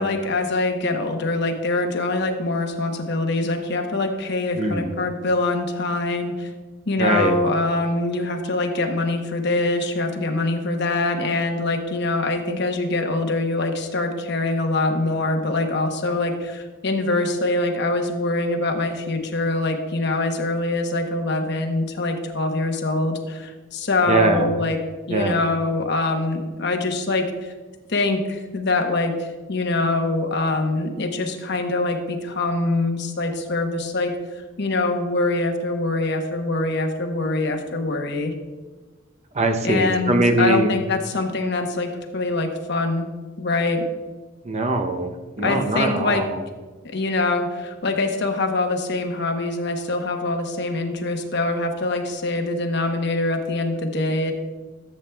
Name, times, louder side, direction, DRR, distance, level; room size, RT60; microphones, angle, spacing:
voice 1, 0.0-6.5 6.9-24.8 25.1-27.5 27.9-29.1 29.5-34.1 34.6-38.3 39.6-43.1 43.4-43.8 45.4-46.2 46.8-54.3, left 2 dB, 60° left, 4 dB, 1.0 m, -24 dB
voice 2, 4.6-4.9 7.0-7.4 24.1-24.6 25.1-25.4 39.3-40.8 44.4-46.4, right 2 dB, 35° right, 5 dB, 0.7 m, -22 dB
14.0 x 7.9 x 2.3 m, 1.3 s
head